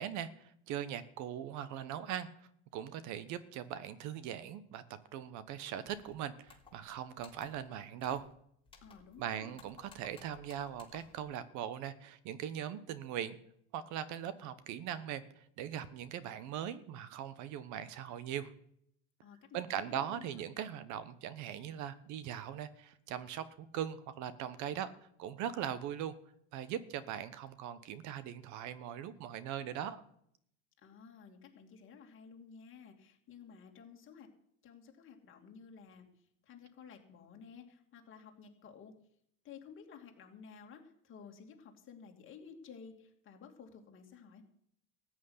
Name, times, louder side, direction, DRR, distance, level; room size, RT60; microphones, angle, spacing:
voice 1, 0.0-2.3 2.7-4.8 5.1-8.3 9.2-13.4 13.7-18.5 19.5-24.9 25.2-26.1 26.5-30.0, right 10 dB, 55° right, 14 dB, 1.1 m, -40 dB
sound 1, 5.9-6.1 6.5-6.9 7.2-7.7 8.0-8.3 8.7-9.2 9.5-11.2, left 5 dB, 15° left, 3.2 m, -59 dB
voice 2, 8.8-9.6 19.2-20.4 30.8-34.3 34.6-38.9 39.4-44.4, left 6 dB, 35° left, 2 dB, 2.8 m, -54 dB
14.0 x 6.3 x 9.6 m, 0.71 s
cardioid pair, 140°, 34 cm